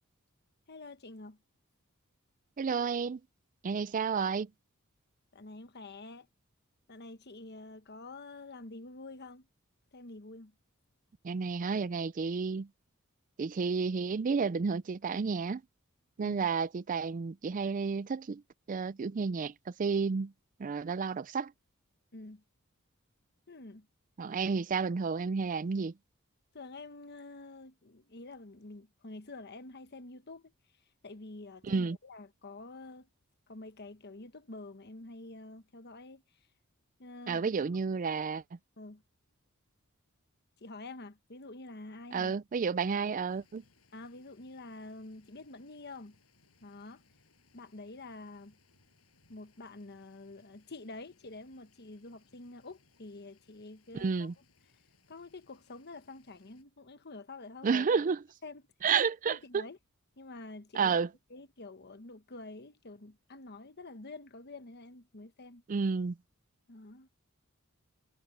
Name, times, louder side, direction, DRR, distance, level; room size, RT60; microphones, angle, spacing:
voice 1, 0.7-1.4 5.3-6.3 6.9-9.5 9.9-10.5 16.2-16.4 22.1-22.4 23.5-23.9 26.5-30.5 31.0-33.1 33.5-36.2 37.0-37.4 38.8-39.0 40.6-42.4 43.9-46.2 46.6-47.0 47.5-48.6 49.3-54.3 55.1-58.0 58.4-58.6 59.3-59.8 60.2-60.9 61.3-65.6 66.7-67.1, left 2 dB, 50° left, 1.2 m, -47 dB
voice 2, 2.6-3.2 3.6-4.5 11.2-12.7 13.4-15.6 16.2-18.4 18.7-19.5 19.8-20.3 20.6-21.5 24.2-25.9 31.6-32.0 37.3-38.4 42.1-43.6 53.9-54.3 57.6-58.2 58.8-59.6 60.7-61.1 65.7-66.2, right 5 dB, 40° right, 0.4 m, -31 dB
sound 1, 43.3-56.6, left 3 dB, 90° left, 7.6 m, -68 dB
head